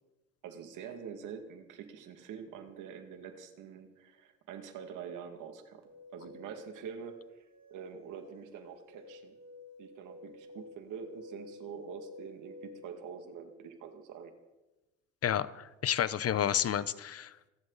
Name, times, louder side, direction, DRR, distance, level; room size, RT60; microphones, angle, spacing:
voice 1, 0.4-5.8 6.1-7.4 7.7-9.4 9.8-14.3, right 7 dB, 90° right, 5 dB, 2.3 m, -45 dB
sound 1, 5.8-13.0, left 3 dB, 60° right, 3.3 m, -52 dB
voice 2, 15.2-17.5, left 9 dB, 50° left, 16 dB, 0.8 m, -31 dB
27.0 x 11.0 x 4.1 m, 1.0 s
cardioid pair, 90°, 30 cm